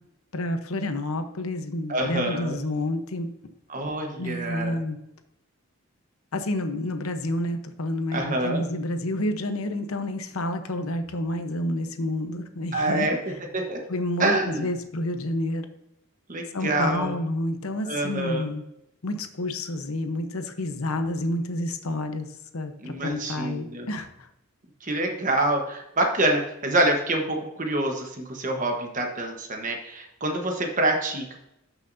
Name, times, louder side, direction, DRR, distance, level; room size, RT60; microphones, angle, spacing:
voice 1, 0.3-3.3 4.2-5.0 6.3-13.1 13.9-15.7 16.5-18.6 19.0-22.3 22.5-24.3, left 1 dB, 75° left, 8 dB, 0.9 m, -29 dB
voice 2, 1.9-2.6 3.7-4.8 8.1-8.6 12.7-13.2 13.5-13.8 14.2-14.7 16.3-17.1 17.9-18.5 22.8-23.9 24.8-31.4, right 1 dB, 35° right, 3 dB, 1.2 m, -26 dB
12.5 x 6.1 x 2.7 m, 0.85 s
head